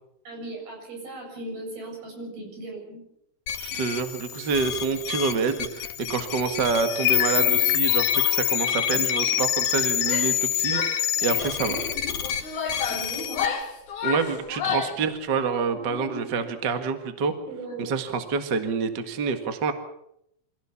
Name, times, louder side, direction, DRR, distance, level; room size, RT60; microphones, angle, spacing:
voice 1, 0.3-3.0 11.6-12.4 12.8-13.5 15.7-16.4 17.4-17.9, right 1 dB, 80° right, 1 dB, 9.2 m, -38 dB
sound 1, 3.5-13.5, left 12 dB, 80° left, 3.4 m, -26 dB
voice 2, 3.6-11.8 14.0-17.3 17.8-19.7, right 5 dB, 40° right, 7 dB, 1.7 m, -27 dB
Female speech woman speaking / Yell, 10.0-10.4 10.7-11.6 12.2-15.0, left 7 dB, 55° left, 3.7 m, -31 dB
25.0 x 16.5 x 7.2 m, 0.78 s
omnidirectional pair, 4.2 m